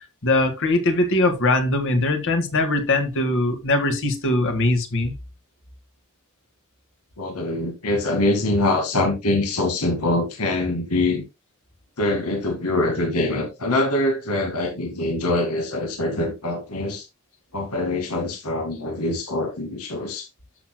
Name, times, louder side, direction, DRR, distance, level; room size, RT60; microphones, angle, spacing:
voice 1, 0.2-5.1, left 2 dB, 60° left, 1.9 m, -21 dB
voice 2, 7.2-11.2 12.0-17.1 17.5-20.3, left 2 dB, 85° left, 2.0 m, -24 dB
13.0 x 6.3 x 2.2 m
head